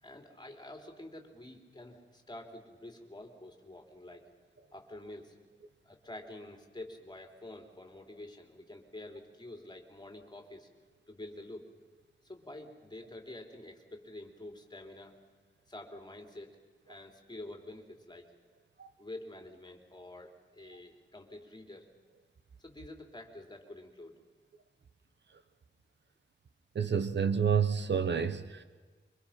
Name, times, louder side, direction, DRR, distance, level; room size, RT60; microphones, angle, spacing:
voice 1, 0.0-4.3 4.7-5.4 5.8-10.7 11.1-11.7 12.2-15.1 15.7-16.6 16.8-18.3 19.0-21.9 22.6-24.1, left 1 dB, 20° left, 3 dB, 3.5 m, -48 dB
voice 2, 26.7-28.6, right 7 dB, 65° right, 11 dB, 1.2 m, -29 dB
27.0 x 25.0 x 5.8 m, 1.4 s
wide cardioid pair, 145°, 20 cm